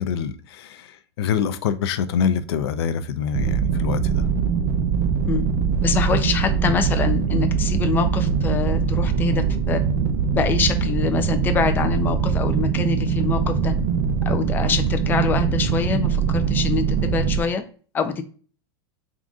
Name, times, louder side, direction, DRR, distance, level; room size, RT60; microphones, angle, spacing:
voice 1, 0.0-4.2, left 7 dB, 80° left, 0.5 m, -25 dB
sound 1, 3.3-17.4, right 6 dB, 50° right, 0.5 m, -22 dB
voice 2, 5.8-9.8 10.3-13.7 14.3-17.6 17.9-18.2, left 5 dB, 15° left, 0.4 m, -25 dB
3.7 x 2.5 x 3.5 m
supercardioid pair, 145°, 13 cm